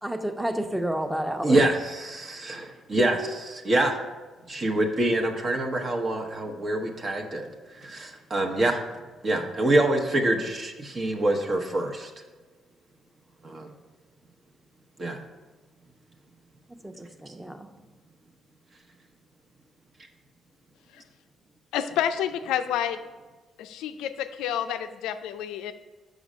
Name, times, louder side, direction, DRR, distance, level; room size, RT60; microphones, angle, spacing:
voice 1, 0.0-1.7 16.8-17.7, right 1 dB, 10° right, 7 dB, 0.8 m, -30 dB
voice 2, 1.4-4.0 4.5-8.8 9.2-12.1 13.4-13.7 15.0-15.2, right 1 dB, 45° right, 3 dB, 1.0 m, -26 dB
voice 3, 21.7-23.0 23.6-25.7, left 10 dB, 75° left, 9 dB, 0.4 m, -29 dB
6.1 x 5.1 x 5.4 m, 1.3 s
hypercardioid pair, 45°, 0 cm